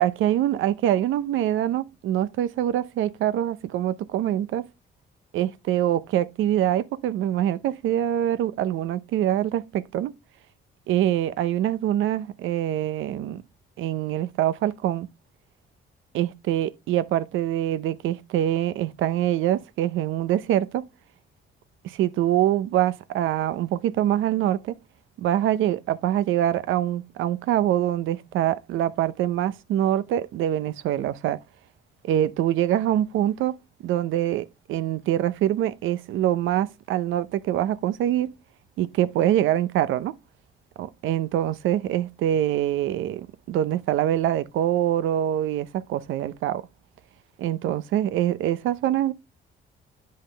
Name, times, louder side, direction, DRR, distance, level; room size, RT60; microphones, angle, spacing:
voice 1, 0.0-4.7 5.3-10.1 10.9-13.4 13.8-15.1 16.1-20.9 21.8-24.8 25.2-31.4 32.0-33.6 33.8-38.3 38.8-40.1 40.8-46.7 47.4-49.1, right 12 dB, 85° right, 0.6 m, -24 dB
8.5 x 5.6 x 3.2 m
cardioid pair, 90°, 20 cm